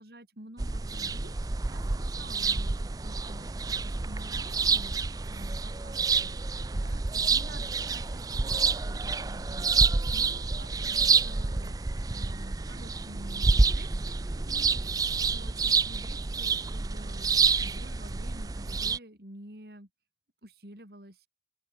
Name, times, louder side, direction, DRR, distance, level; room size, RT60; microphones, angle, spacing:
voice 1, 0.0-5.0 5.3-6.4 6.7-11.8 12.1-14.9 15.3-19.9 20.4-21.3, right 1 dB, 60° right, 5.2 m, -50 dB
sound 1, 0.6-19.0, right 4 dB, 20° right, 0.4 m, -28 dB
open air
head